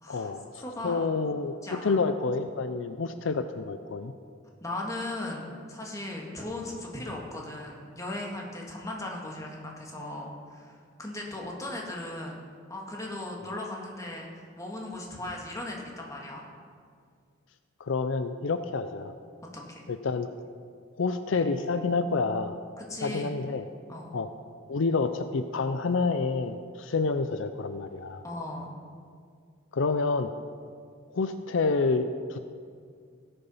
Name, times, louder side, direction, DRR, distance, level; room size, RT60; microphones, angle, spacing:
voice 1, 0.1-1.5 1.8-4.1 17.8-19.1 19.9-20.3 21.0-22.6 23.0-23.7 24.1-24.3 24.7-28.2 29.7-30.3 31.1-32.4, left 4 dB, 70° left, 9 dB, 0.5 m, -28 dB
voice 2, 0.6-1.1 1.6-2.0 4.6-12.4 12.7-16.4 19.5-19.8 22.8-23.3 23.9-24.1 28.2-28.7, left 1 dB, 15° left, -1 dB, 1.8 m, -37 dB
17.0 x 6.9 x 5.5 m, 2.1 s
head